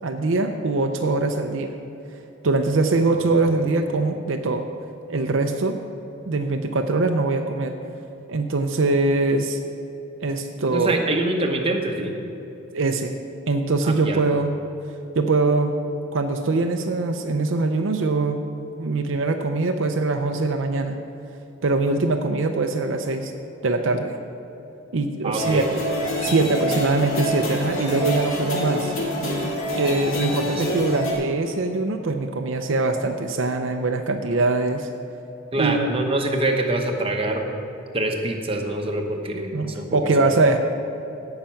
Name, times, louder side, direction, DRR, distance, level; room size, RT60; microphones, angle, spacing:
voice 1, 0.0-1.7 2.4-4.7 5.1-5.8 6.3-7.7 8.3-9.6 10.2-11.0 12.7-13.1 13.5-14.5 15.1-15.8 16.1-18.4 18.8-21.0 21.6-23.3 23.6-24.2 24.9-25.8 26.2-28.9 29.8-34.9 35.5-35.9 39.5-40.6, right 3 dB, 60° right, 5 dB, 0.6 m, -22 dB
voice 2, 10.6-12.1 13.8-14.2 25.2-25.7 30.4-30.6 35.5-37.5 37.9-40.3, right 1 dB, 25° right, 2 dB, 0.9 m, -25 dB
sound 1, 25.4-31.1, equal, 70° left, 2.3 m, -26 dB
16.5 x 5.8 x 5.8 m, 2.9 s
head